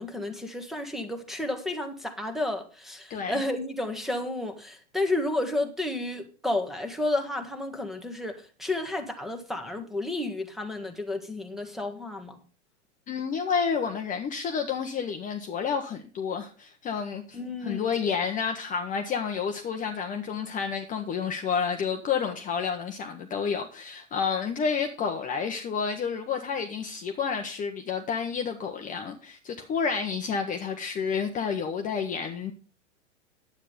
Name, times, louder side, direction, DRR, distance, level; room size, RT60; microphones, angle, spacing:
voice 1, 0.0-12.4 17.3-17.9, left 2 dB, ahead, 1.4 m, -31 dB
voice 2, 3.1-3.4 13.1-32.5, left 6 dB, 20° left, 1.0 m, -30 dB
10.0 x 8.5 x 5.1 m
hypercardioid pair, 130°, 36 cm